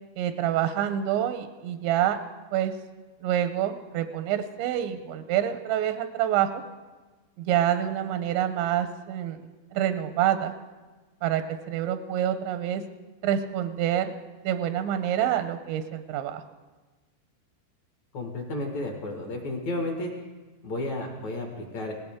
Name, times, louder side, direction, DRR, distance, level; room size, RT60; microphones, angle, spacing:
voice 1, 0.2-2.2 2.5-2.7 3.2-6.6 7.4-9.4 9.7-10.5 11.2-12.8 13.2-14.1 14.4-16.4, right 11 dB, 90° right, 9 dB, 2.9 m, -27 dB
voice 2, 18.1-20.1 20.6-21.9, left 1 dB, 60° left, 1 dB, 2.1 m, -32 dB
19.0 x 16.5 x 3.6 m, 1.3 s
omnidirectional pair, 5.1 m